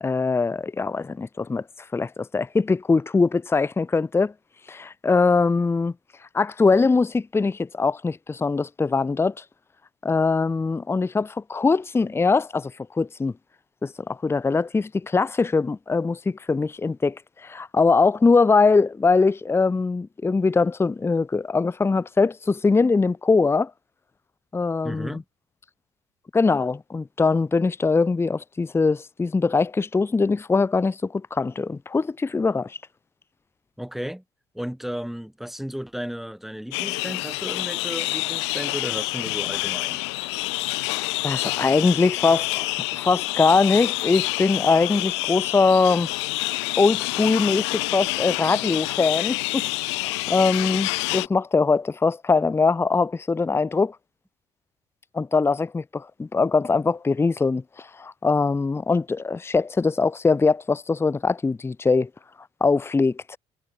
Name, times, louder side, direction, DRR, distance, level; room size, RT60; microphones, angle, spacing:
voice 1, 0.0-1.6 1.9-4.3 4.7-5.9 6.3-9.4 10.0-13.3 13.8-23.7 24.5-25.2 26.3-32.8 41.2-46.1 46.8-49.6 49.9-54.0 55.1-62.1 62.6-63.4, left 4 dB, 15° left, 0.7 m, -22 dB
voice 2, 24.8-25.2 33.8-34.2 34.5-40.0, equal, ahead, 2.9 m, -34 dB
sound 1, 36.7-51.3, left 25 dB, 90° left, 0.6 m, -27 dB
supercardioid pair, 75°, 14 cm